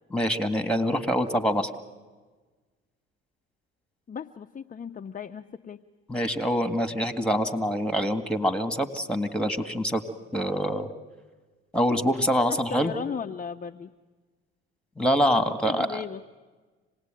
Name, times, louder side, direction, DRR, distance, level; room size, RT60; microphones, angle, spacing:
voice 1, 0.1-1.7 6.1-10.0 10.3-10.9 11.7-13.0 15.0-16.0, equal, 5° left, 11 dB, 2.0 m, -25 dB
voice 2, 4.1-5.8 12.5-13.9 15.6-16.2, left 6 dB, 25° left, 6 dB, 0.7 m, -36 dB
26.0 x 18.5 x 9.1 m, 1.3 s
hypercardioid pair, 65°, 30 cm